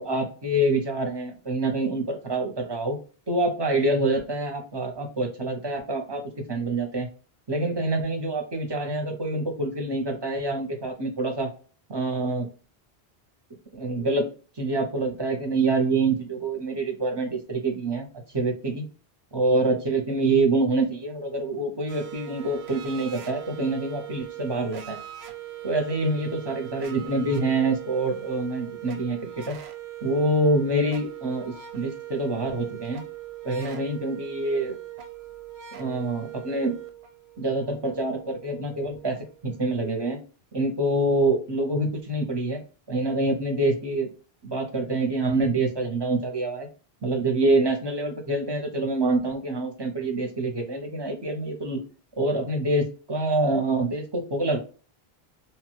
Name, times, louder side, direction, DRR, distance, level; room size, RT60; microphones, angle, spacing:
voice 1, 0.0-3.0 3.3-6.2 6.5-7.1 7.5-11.5 11.9-12.5 13.7-14.3 14.6-18.1 18.3-18.8 19.3-25.0 25.6-29.6 30.0-33.0 33.4-34.8 35.7-36.7 37.4-39.2 39.4-40.2 40.5-42.6 42.9-44.1 44.4-46.7 47.0-51.8 52.2-54.6, right 2 dB, 30° right, 4 dB, 0.5 m, -26 dB
sound 1, 21.9-40.1, right 12 dB, 85° right, 0.8 m, -41 dB
2.8 x 2.2 x 3.0 m, 0.39 s
omnidirectional pair, 1.0 m